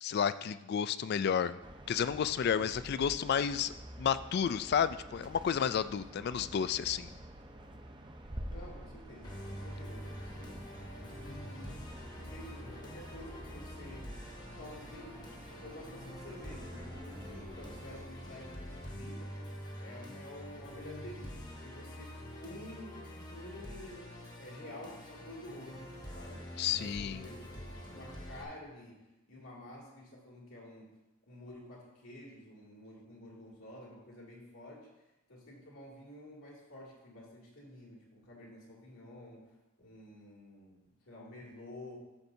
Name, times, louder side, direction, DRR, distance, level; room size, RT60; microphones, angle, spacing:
voice 1, 0.0-1.6 1.9-3.7 4.0-7.1 26.6-27.3, left 7 dB, 50° left, 14 dB, 0.3 m, -31 dB
sound 1, 1.6-18.0, right 1 dB, 25° right, 0.6 m, -49 dB
voice 2, 8.4-10.6 11.0-14.1 14.6-15.2 15.5-19.5 19.8-26.4 26.8-30.9 31.3-34.9 35.3-40.8 41.1-42.0, left 1 dB, 85° left, -3 dB, 2.5 m, -50 dB
Musical instrument, 9.2-28.4, equal, 20° left, 0.9 m, -46 dB
11.5 x 6.7 x 2.7 m, 1.0 s
head